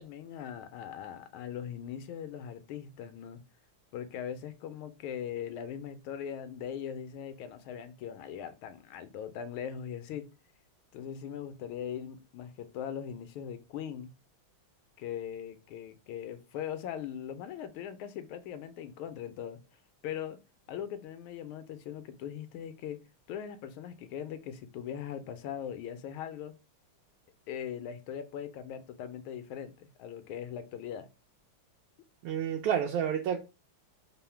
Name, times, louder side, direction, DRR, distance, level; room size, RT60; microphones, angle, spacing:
voice 1, 0.0-3.4 3.9-10.3 10.9-14.1 15.0-19.6 20.0-20.4 20.7-23.0 23.3-26.6 27.5-31.1, left 9 dB, 90° left, 1.5 m, -40 dB
voice 2, 32.2-33.4, right 8 dB, 80° right, 1.4 m, -29 dB
3.8 x 2.0 x 4.3 m
omnidirectional pair, 2.2 m